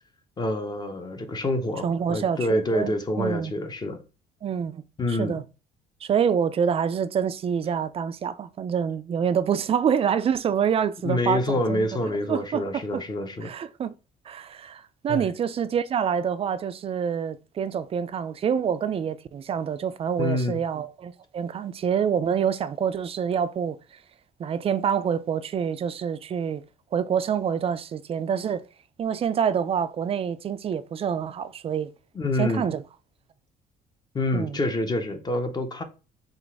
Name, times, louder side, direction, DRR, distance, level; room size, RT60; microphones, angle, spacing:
voice 1, 0.4-4.0 5.0-5.4 11.0-13.5 15.1-15.3 20.2-20.6 32.1-32.7 34.1-35.8, left 1 dB, 25° left, 0.7 m, -27 dB
voice 2, 1.8-3.5 4.4-4.8 5.1-5.4 6.0-11.9 12.3-13.0 13.4-13.9 14.3-23.8 24.4-26.6 26.9-28.6 29.0-31.9 32.4-32.8 34.3-34.6, right 7 dB, 35° right, 0.4 m, -26 dB
3.9 x 2.5 x 4.7 m
cardioid pair, 110°, 17 cm